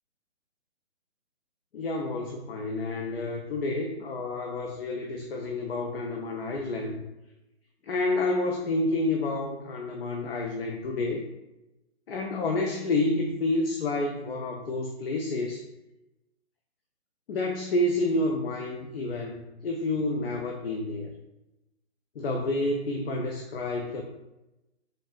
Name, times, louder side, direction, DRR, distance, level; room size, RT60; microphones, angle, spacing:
voice 1, 1.7-7.0 7.8-11.2 12.1-15.6 17.3-21.1 22.2-24.0, left 2 dB, 60° left, 2 dB, 0.4 m, -29 dB
3.2 x 2.4 x 2.4 m, 0.95 s
hypercardioid pair, 150°, 33 cm